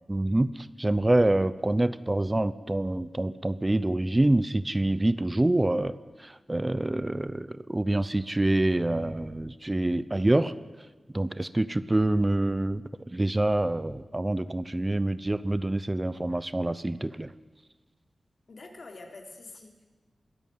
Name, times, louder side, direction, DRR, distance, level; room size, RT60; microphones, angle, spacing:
voice 1, 0.1-5.9 6.3-10.5 11.1-17.3, right 1 dB, 20° right, 15 dB, 0.6 m, -26 dB
voice 2, 18.5-19.8, left 3 dB, 60° left, 2 dB, 3.4 m, -46 dB
22.0 x 13.0 x 9.3 m, 1.3 s
wide cardioid pair, 70°, 0 cm